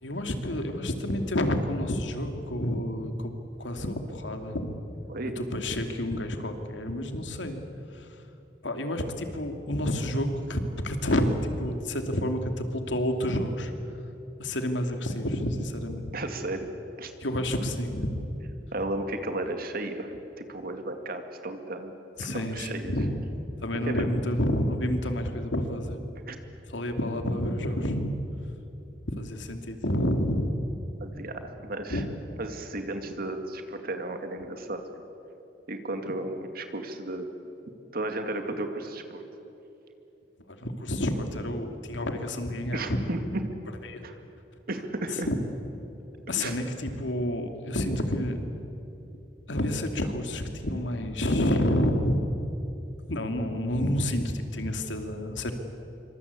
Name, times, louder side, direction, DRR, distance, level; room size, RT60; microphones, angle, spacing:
voice 1, 0.0-3.3 3.6-4.7 5.4-7.6 7.9-8.1 8.6-13.7 14.4-16.1 17.2-18.4 22.2-23.1 23.6-26.0 26.7-28.1 29.1-30.6 31.9-32.1 40.5-43.2 43.9-44.0 45.1-45.4 46.3-48.4 49.5-52.2 53.1-55.5, left 1 dB, 85° left, 6 dB, 2.8 m, -29 dB
voice 2, 16.1-16.7 17.0-17.1 18.7-21.9 22.3-22.9 23.9-24.0 26.3-26.4 31.0-32.0 32.4-34.8 35.7-37.3 37.9-39.2 42.7-43.4 44.0-44.1 44.7-45.3 46.4-46.6, right 2 dB, 55° right, 6 dB, 2.3 m, -34 dB
27.0 x 25.0 x 8.4 m, 3.0 s
head